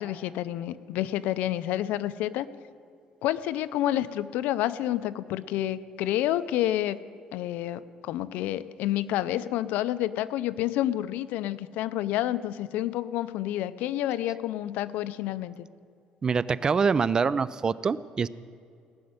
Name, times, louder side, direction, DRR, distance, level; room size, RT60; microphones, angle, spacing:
voice 1, 0.0-2.5 3.2-7.0 7.3-15.7, left 13 dB, 85° left, 15 dB, 0.5 m, -29 dB
voice 2, 16.2-18.3, right 5 dB, 25° right, 18 dB, 0.4 m, -25 dB
18.0 x 6.5 x 9.5 m, 2.4 s
cardioid pair, 135°, 3 cm